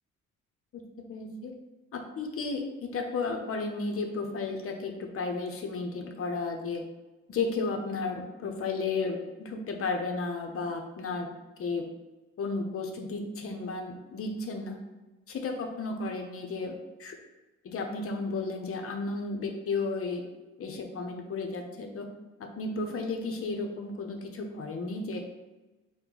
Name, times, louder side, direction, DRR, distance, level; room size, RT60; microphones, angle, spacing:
voice 1, 0.7-1.5 1.9-6.8 7.3-11.3 11.6-11.9 12.4-14.8 15.3-17.2 17.6-20.2 20.6-22.1 22.4-25.2, left 3 dB, 50° left, 4 dB, 0.7 m, -33 dB
4.3 x 2.2 x 3.8 m, 1.1 s
cardioid pair, 90°, 30 cm